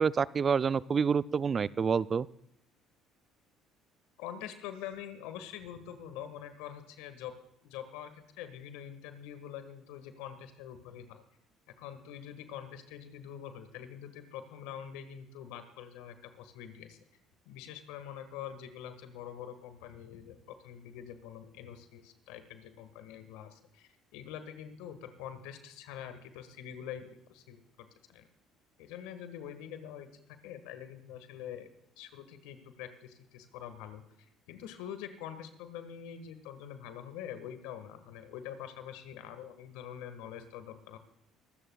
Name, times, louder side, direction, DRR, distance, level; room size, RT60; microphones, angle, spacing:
voice 1, 0.0-2.3, right 6 dB, 40° right, 18 dB, 0.4 m, -28 dB
voice 2, 4.2-7.3 7.6-11.2 11.8-17.0 17.4-28.3 28.8-31.7 32.0-41.0, left 9 dB, 80° left, 9 dB, 1.5 m, -45 dB
23.5 x 14.0 x 2.3 m, 0.76 s
hypercardioid pair, 65°, 0 cm